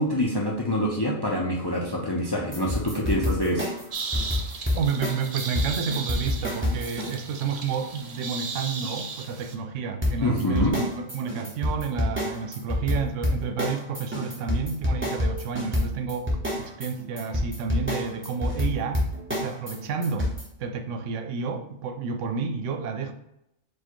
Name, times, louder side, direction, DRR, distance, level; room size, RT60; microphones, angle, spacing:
voice 1, 0.0-3.7 4.0-4.4 10.2-10.7, equal, 35° left, 0.4 m, -26 dB
sound 1, 2.5-7.1 10.0-20.4, left 1 dB, 10° right, 0.9 m, -27 dB
sound 2, 3.9-9.5, right 5 dB, 55° right, 0.4 m, -36 dB
voice 2, 4.7-16.3 16.6-19.0 19.3-20.3 20.6-23.1, right 6 dB, 85° right, 0.9 m, -30 dB
4.6 x 2.4 x 4.5 m
omnidirectional pair, 1.2 m